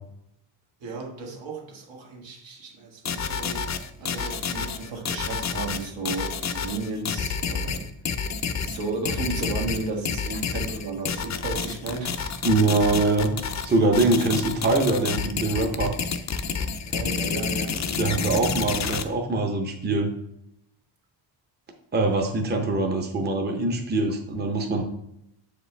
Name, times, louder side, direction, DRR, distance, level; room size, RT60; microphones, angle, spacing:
voice 1, 0.8-7.9 8.6-12.2 14.0-14.2 16.9-18.4, right 3 dB, 75° right, 0 dB, 1.8 m, -34 dB
sound 1, 3.0-19.0, left 6 dB, 40° left, 0.5 m, -29 dB
voice 2, 12.4-13.3 13.6-15.9 18.0-20.1 21.9-24.8, right 2 dB, 20° right, 3 dB, 0.8 m, -23 dB
7.3 x 5.0 x 3.3 m, 0.78 s
cardioid pair, 125°, 45 cm